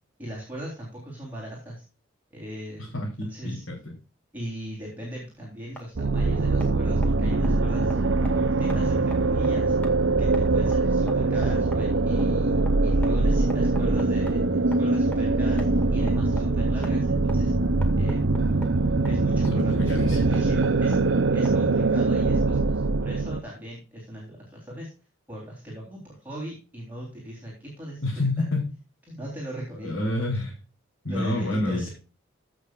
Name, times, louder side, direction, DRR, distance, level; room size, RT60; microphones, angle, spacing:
voice 1, 0.2-1.8 2.3-2.9 3.2-3.6 4.3-8.0 8.3-9.7 10.2-17.5 18.0-18.2 18.5-21.0 21.3-24.9 25.3-28.0 28.4-28.5 29.1-29.9 31.1-31.9, equal, 10° right, -5 dB, 3.6 m, -38 dB
voice 2, 2.9-3.8 19.5-20.2 28.0-28.6 29.8-30.5 31.0-31.9, left 1 dB, 80° left, -3 dB, 3.3 m, -28 dB
sound 1, 5.2-21.9, equal, 5° left, 1.9 m, -46 dB
sound 2, 6.0-23.4, right 3 dB, 65° right, 0.8 m, -23 dB
15.5 x 6.3 x 2.4 m, 0.32 s
head